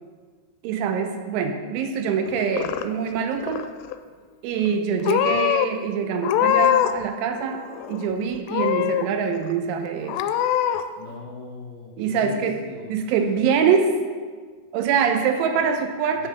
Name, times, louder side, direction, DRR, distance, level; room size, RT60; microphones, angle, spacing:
voice 1, 0.6-3.7 4.4-7.6 7.9-10.2 12.0-12.6 12.9-14.0 14.7-16.3, right 6 dB, 85° right, 6 dB, 3.0 m, -24 dB
Purr / Meow, 2.3-3.1 3.4-4.0 4.7-4.8 5.0-5.7 6.2-7.1 7.3-8.1 8.5-9.1 9.5-9.6 10.1-10.8, left 11 dB, 85° left, 3.0 m, -23 dB
voice 2, 11.0-12.9 16.1-16.3, left 3 dB, 65° left, -7 dB, 1.1 m, -39 dB
10.0 x 9.0 x 5.5 m, 1.5 s
omnidirectional pair, 5.7 m